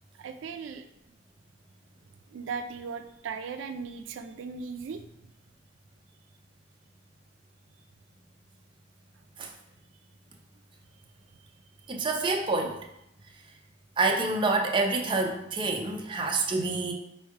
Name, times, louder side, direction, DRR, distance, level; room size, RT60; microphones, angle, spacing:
voice 1, 0.2-0.9 2.3-5.0, right 5 dB, 85° right, 8 dB, 0.3 m, -37 dB
voice 2, 11.9-12.8 14.0-16.9, right 3 dB, 25° right, 1 dB, 0.5 m, -27 dB
3.5 x 3.2 x 4.6 m, 0.80 s
head